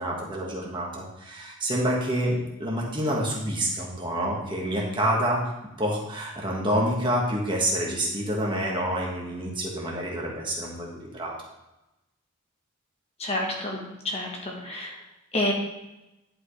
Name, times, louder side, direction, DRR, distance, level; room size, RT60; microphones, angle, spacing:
voice 1, 0.0-11.3, right 1 dB, 20° right, -3 dB, 1.6 m, -28 dB
voice 2, 13.2-13.8 14.0-14.9 15.3-15.5, left 1 dB, 30° left, -1 dB, 1.3 m, -28 dB
11.0 x 5.4 x 3.3 m, 0.95 s
head